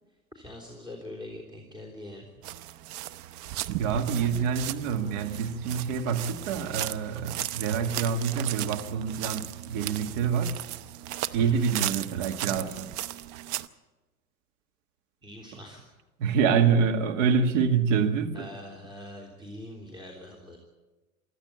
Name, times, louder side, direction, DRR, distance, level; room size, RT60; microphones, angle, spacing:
voice 1, 0.3-2.3 11.4-11.7 15.2-15.8 17.3-17.6 18.3-20.6, left 1 dB, 10° right, 3.5 m, -43 dB
sound 1, 2.4-13.7, right 14 dB, 45° right, 0.8 m, -36 dB
voice 2, 3.8-10.6 11.3-12.9 16.2-18.5, right 6 dB, 60° right, 2.0 m, -26 dB
24.0 x 14.5 x 8.4 m
figure-of-eight pair, 85°, 43 cm